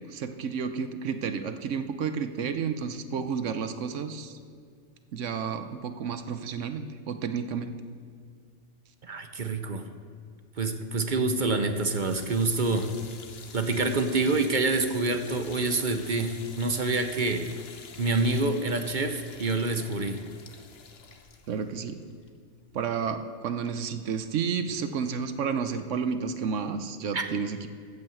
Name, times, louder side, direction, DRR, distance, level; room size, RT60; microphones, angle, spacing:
voice 1, 0.1-4.4 5.1-7.8 21.5-22.0 22.7-27.7, right 6 dB, 70° right, 9 dB, 1.0 m, -31 dB
voice 2, 9.0-9.8 10.6-13.0 13.5-17.5 18.0-20.2 27.1-27.3, right 3 dB, 45° right, 7 dB, 0.7 m, -27 dB
sound 1, 11.7-22.8, left 5 dB, 55° left, 1.1 m, -48 dB
14.5 x 5.6 x 7.8 m, 2.2 s
omnidirectional pair, 1.4 m